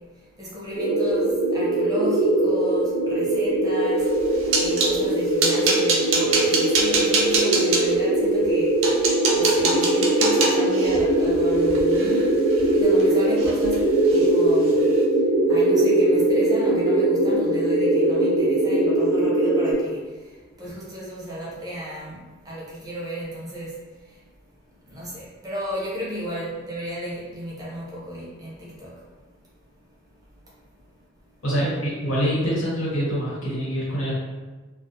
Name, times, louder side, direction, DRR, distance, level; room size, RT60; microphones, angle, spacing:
voice 1, 0.2-9.1 9.3-13.8 14.1-14.8 15.1-23.8 24.0-24.2 24.9-29.0, equal, 20° right, -7 dB, 0.7 m, -35 dB
sound 1, 0.7-19.7, right 1 dB, 40° left, 1.1 m, -21 dB
sound 2, 4.1-5.0 5.4-7.8 8.4-8.5 8.8-13.0 13.4-13.8 14.1-14.3 14.7-14.8, right 3 dB, 70° right, 0.5 m, -25 dB
voice 2, 31.4-34.1, equal, 85° left, -8 dB, 1.1 m, -25 dB
2.3 x 2.1 x 2.7 m, 1.3 s
head